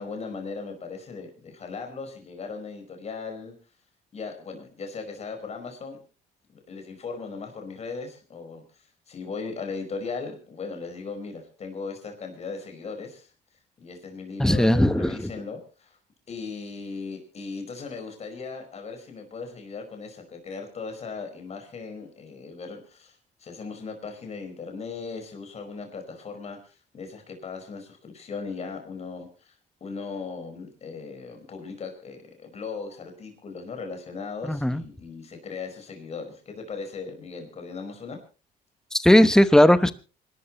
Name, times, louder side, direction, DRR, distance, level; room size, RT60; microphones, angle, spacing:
voice 1, 0.0-3.5 4.1-6.0 6.5-13.3 13.8-16.0 16.3-38.2, left 4 dB, 40° left, 4 dB, 5.1 m, -38 dB
voice 2, 14.4-15.1 34.4-34.8 38.9-39.9, left 1 dB, 5° left, 13 dB, 1.0 m, -17 dB
26.0 x 12.5 x 3.1 m, 0.34 s
cardioid pair, 110°, 17 cm